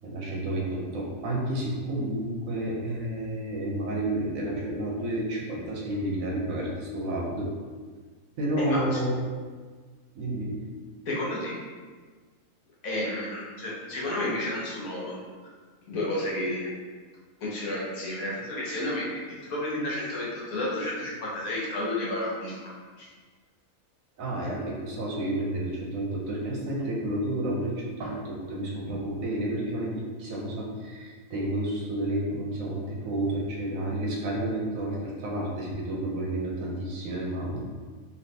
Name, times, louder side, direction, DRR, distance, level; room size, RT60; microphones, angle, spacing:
voice 1, 0.0-7.5 8.4-9.2 10.1-10.7 24.2-37.6, right 1 dB, 70° right, -2 dB, 1.0 m, -30 dB
voice 2, 8.6-9.0 11.1-11.6 12.8-15.2 15.9-16.7 17.4-22.6 23.0-23.1, left 1 dB, 75° left, -5 dB, 1.3 m, -31 dB
3.2 x 2.6 x 2.7 m, 1.5 s
omnidirectional pair, 1.5 m